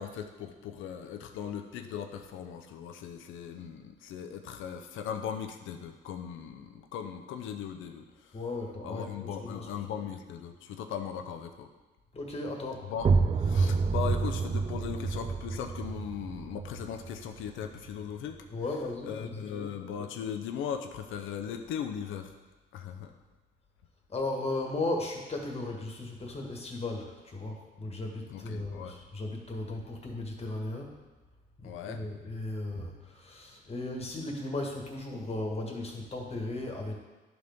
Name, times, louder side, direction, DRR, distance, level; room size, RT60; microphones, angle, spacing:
voice 1, 0.0-8.0 8.8-11.7 12.9-13.1 13.4-18.3 19.1-22.3 22.7-23.1 28.3-28.9 31.6-32.0, left 8 dB, 85° left, 5 dB, 0.6 m, -38 dB
voice 2, 8.3-9.9 12.1-12.9 18.5-19.5 24.1-31.0 31.6-36.9, left 2 dB, 30° left, 0 dB, 1.5 m, -36 dB
sound 1, 13.0-18.5, right 4 dB, 30° right, 0.4 m, -29 dB
11.0 x 3.9 x 3.5 m, 1.2 s
cardioid pair, 90°, 20 cm